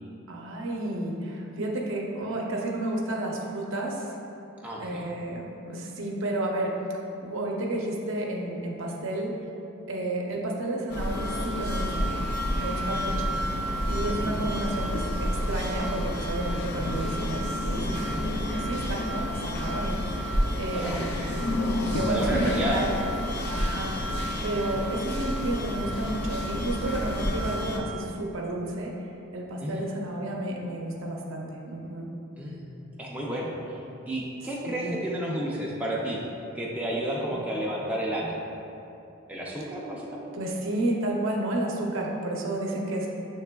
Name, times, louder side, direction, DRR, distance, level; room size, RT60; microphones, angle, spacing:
voice 1, 0.3-4.1 4.8-5.4 5.7-6.7 7.2-9.3 9.9-12.1 12.6-13.4 13.8-15.0 15.5-21.0 21.8-22.9 23.5-23.9 24.4-28.9 29.3-32.1 34.6-35.0 37.3-37.4 40.3-43.1, right 1 dB, 65° right, -1 dB, 0.6 m, -31 dB
voice 2, 4.6-5.1 16.7-16.9 20.7-21.3 22.0-22.8 29.6-29.8 32.4-33.8 34.1-36.2 36.5-38.5 39.3-40.3, right 1 dB, 5° right, -5 dB, 0.4 m, -31 dB
sound 1, 10.9-27.8, equal, 55° left, 0.4 m, -29 dB
6.7 x 3.2 x 2.2 m, 2.8 s
head